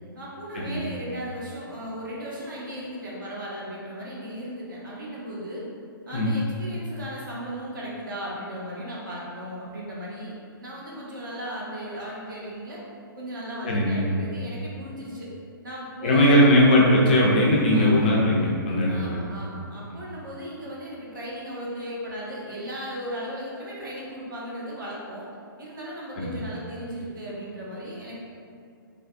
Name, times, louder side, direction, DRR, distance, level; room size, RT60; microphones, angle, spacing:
voice 1, 0.2-5.6 6.1-10.3 10.6-12.8 13.2-15.3 15.6-16.7 17.7-18.1 18.9-25.3 25.6-28.2, equal, 60° right, -5 dB, 1.0 m, -36 dB
voice 2, 13.6-14.0 16.0-19.2 26.2-26.3, left 1 dB, 25° left, -4 dB, 0.3 m, -19 dB
3.3 x 3.1 x 2.5 m, 2.4 s
hypercardioid pair, 170°, 12 cm